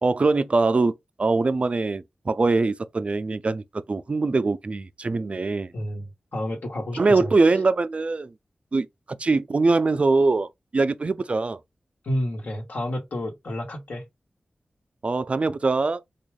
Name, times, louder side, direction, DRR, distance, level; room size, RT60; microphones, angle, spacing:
voice 1, 0.0-5.7 7.0-8.3 8.7-11.6 15.0-16.0, right 3 dB, 45° right, 0.4 m, -23 dB
voice 2, 5.7-7.3 12.0-14.0, left 1 dB, 75° left, 1.2 m, -30 dB
3.5 x 2.3 x 3.3 m
wide cardioid pair, 65°, 3 cm